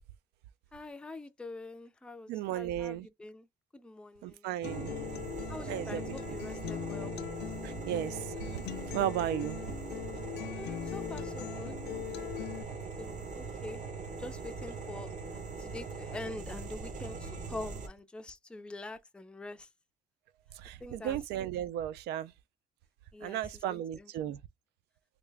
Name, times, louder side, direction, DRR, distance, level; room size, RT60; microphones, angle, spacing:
voice 1, 0.7-3.5 3.7-4.5 5.5-7.1 10.4-11.8 12.0-15.1 15.6-19.7 20.8-21.2 23.1-23.4 23.7-24.1, left 2 dB, 5° left, 0.4 m, -45 dB
voice 2, 2.3-3.1 4.2-4.9 5.7-6.1 7.6-9.6 20.5-22.3 23.2-24.4, right 11 dB, 80° right, 0.4 m, -35 dB
Acoustic guitar, 4.6-12.6, left 14 dB, 80° left, 0.5 m, -41 dB
sound 1, 4.6-17.9, right 4 dB, 45° right, 0.9 m, -41 dB
3.4 x 2.4 x 3.2 m
cardioid pair, 110°, 17 cm